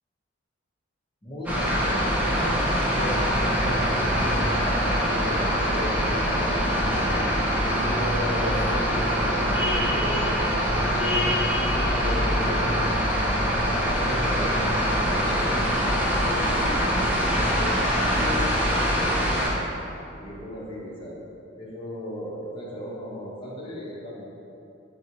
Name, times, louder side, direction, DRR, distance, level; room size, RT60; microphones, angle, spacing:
voice 1, 1.2-6.9 7.4-12.8 13.8-15.5 16.1-16.9 17.4-19.2 20.2-21.2 21.6-24.3, equal, 25° left, -5 dB, 0.7 m, -36 dB
sound 1, 1.5-19.5, equal, 10° right, 0.5 m, -24 dB
3.8 x 3.7 x 2.9 m, 2.8 s
head